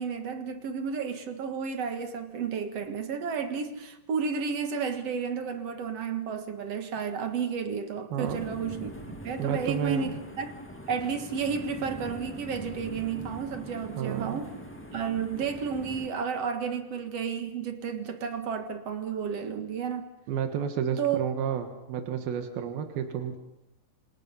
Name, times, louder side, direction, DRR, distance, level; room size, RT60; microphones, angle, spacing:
voice 1, 0.0-8.9 9.2-10.5 10.9-14.5 14.9-20.1 21.0-21.2, right 6 dB, 55° right, 2.2 m, -32 dB
voice 2, 8.1-8.5 9.4-10.2 14.0-14.4 20.3-23.4, right 8 dB, 85° right, 3.4 m, -31 dB
sound 1, 8.2-16.1, equal, 10° left, 0.7 m, -42 dB
27.5 x 27.0 x 5.6 m
omnidirectional pair, 4.1 m